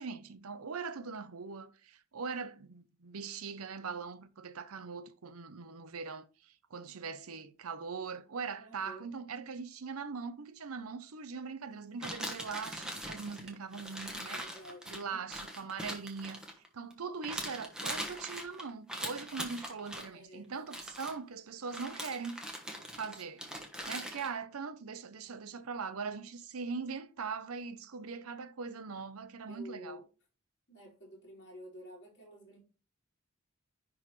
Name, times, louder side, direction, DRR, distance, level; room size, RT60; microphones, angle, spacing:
voice 1, 0.0-14.4 14.9-16.4 16.7-22.4 22.9-23.4 23.9-30.0, right 5 dB, 90° right, 0.7 m, -41 dB
voice 2, 8.6-9.3 14.3-15.2 20.1-20.5 29.5-30.0 30.7-32.6, equal, 50° left, 4.1 m, -51 dB
sound 1, 12.0-16.9 17.2-20.1 20.6-21.2 21.7-24.3, equal, 5° right, 1.1 m, -41 dB
10.5 x 3.8 x 3.2 m
head